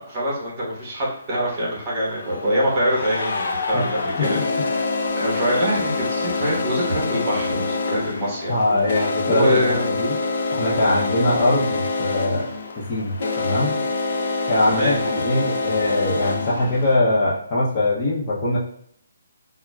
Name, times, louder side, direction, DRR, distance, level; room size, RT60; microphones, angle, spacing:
voice 1, 0.0-4.9 5.2-10.0 14.6-15.0, equal, 25° right, -4 dB, 1.2 m, -25 dB
sound 1, 0.8-0.9 2.0-17.0, left 3 dB, 55° left, 0.6 m, -26 dB
voice 2, 4.2-4.7 8.5-10.2 10.5-12.5 12.8-13.8 14.5-18.6, left 2 dB, 25° left, -6 dB, 0.8 m, -22 dB
5.6 x 2.1 x 2.3 m, 0.68 s
hypercardioid pair, 160°, 0 cm